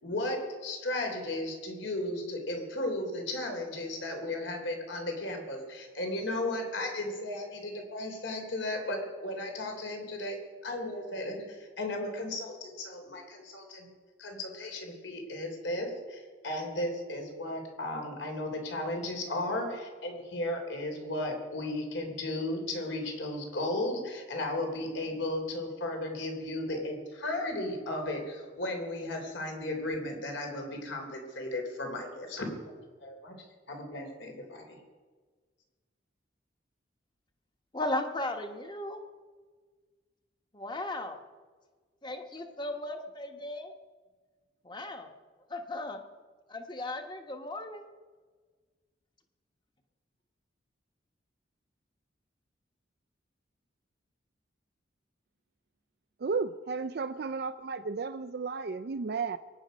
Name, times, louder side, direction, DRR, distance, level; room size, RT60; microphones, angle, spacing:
voice 1, 0.0-10.4 10.6-13.9 14.2-33.3 33.7-34.8, left 1 dB, 75° left, 3 dB, 3.6 m, -35 dB
voice 2, 37.7-39.0 40.5-41.2 42.0-43.7 44.6-45.1 45.5-46.0 46.5-47.8, left 1 dB, 25° left, 5 dB, 1.2 m, -36 dB
voice 3, 56.2-59.4, right 4 dB, 55° right, 11 dB, 0.4 m, -33 dB
23.0 x 9.8 x 5.3 m, 1.5 s
head